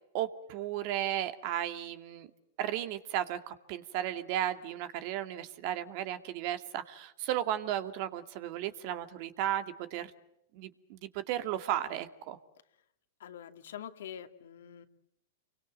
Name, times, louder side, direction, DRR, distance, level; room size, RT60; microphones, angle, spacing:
voice 1, 0.1-2.3 2.6-10.1 10.5-12.4, right 11 dB, 50° right, 9 dB, 2.4 m, -34 dB
voice 2, 13.2-14.9, left 9 dB, 75° left, 7 dB, 2.4 m, -45 dB
28.5 x 24.0 x 7.8 m, 0.81 s
hypercardioid pair, 120°, 0 cm